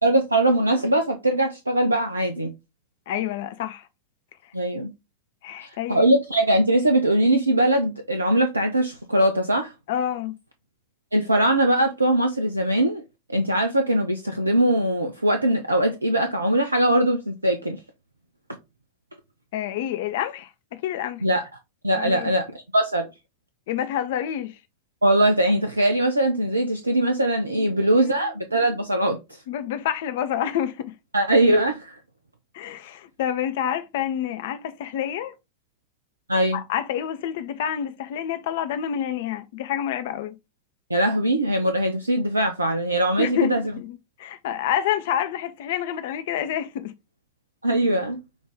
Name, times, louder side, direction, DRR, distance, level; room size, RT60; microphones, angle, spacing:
voice 1, 0.0-2.5 4.5-4.9 5.6-9.7 11.1-13.0 13.3-17.8 21.2-21.5 21.8-22.5 22.7-23.1 25.0-29.4 31.1-32.0 36.3-36.6 40.9-43.6 47.6-48.2, right 1 dB, 80° right, 0.5 m, -21 dB
voice 2, 3.1-3.9 5.4-6.1 9.9-10.3 19.5-21.2 22.0-22.3 23.7-24.6 27.6-28.3 29.5-30.9 32.5-35.3 36.5-40.3 43.2-46.9, left 10 dB, 55° left, 0.6 m, -28 dB
6.1 x 2.6 x 3.4 m
figure-of-eight pair, 90°, 0 cm